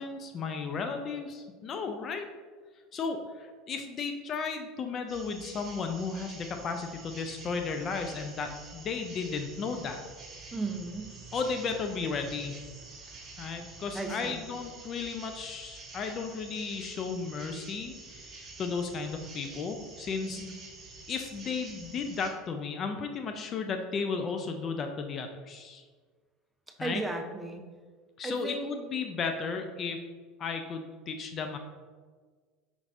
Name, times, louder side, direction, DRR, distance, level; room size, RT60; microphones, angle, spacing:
voice 1, 0.0-2.3 2.9-10.0 11.3-12.6 13.4-20.4 21.1-25.8 26.8-27.0 28.2-30.0 30.4-31.6, left 5 dB, 40° left, 5 dB, 0.4 m, -34 dB
sound 1, 5.1-22.3, right 3 dB, 35° right, 1.4 m, -48 dB
voice 2, 10.5-11.1 13.9-14.4 20.3-20.5 26.8-27.6 28.2-28.7, right 2 dB, 10° right, 3 dB, 0.6 m, -35 dB
5.0 x 3.2 x 2.5 m, 1.5 s
hypercardioid pair, 75°, 0 cm